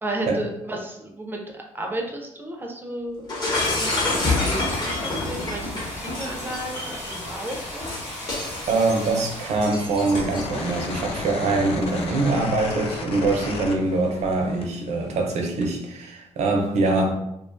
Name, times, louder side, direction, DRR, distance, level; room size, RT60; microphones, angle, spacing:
voice 1, 0.0-3.3 3.8-7.9, right 1 dB, 15° right, 0.4 m, -33 dB
Shatter, 3.3-10.7, left 2 dB, 35° left, 0.8 m, -28 dB
sound 1, 4.0-14.7, left 1 dB, 80° left, 0.9 m, -38 dB
voice 2, 8.7-17.1, right 3 dB, 65° right, 0.5 m, -23 dB
sound 2, 10.3-14.3 14.6-15.7, left 3 dB, 55° left, 0.4 m, -33 dB
2.4 x 2.2 x 2.4 m
cardioid pair, 110°, 12 cm